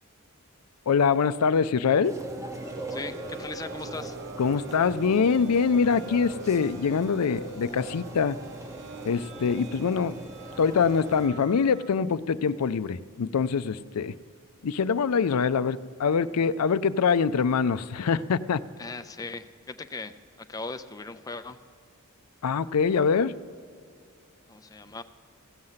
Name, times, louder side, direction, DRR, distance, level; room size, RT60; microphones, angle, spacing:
voice 1, 0.9-2.1 4.4-8.4 9.0-10.2 10.6-14.1 14.6-18.6 22.4-23.3, left 6 dB, 80° left, 14 dB, 0.4 m, -24 dB
sound 1, 1.8-12.0, right 4 dB, 55° right, 0.7 m, -45 dB
sound 2, 2.0-11.3, right 2 dB, 15° right, 0.8 m, -40 dB
voice 2, 2.9-4.2 18.8-21.6 24.5-25.0, left 3 dB, 15° left, 9 dB, 0.5 m, -38 dB
16.0 x 7.8 x 5.7 m, 2.2 s
head